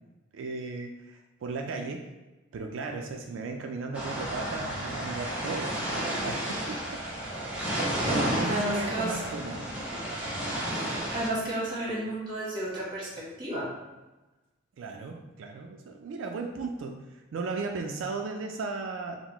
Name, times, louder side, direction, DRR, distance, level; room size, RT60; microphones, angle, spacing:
voice 1, 0.3-2.1 2.5-6.4 6.7-6.8 8.1-9.7 14.8-19.2, right 4 dB, 75° right, 3 dB, 0.3 m, -36 dB
sound 1, 3.9-11.3, right 1 dB, 5° right, 0.7 m, -32 dB
voice 2, 8.4-9.2 11.1-13.7, right 1 dB, 25° right, -6 dB, 1.2 m, -32 dB
5.7 x 2.0 x 2.9 m, 1.1 s
head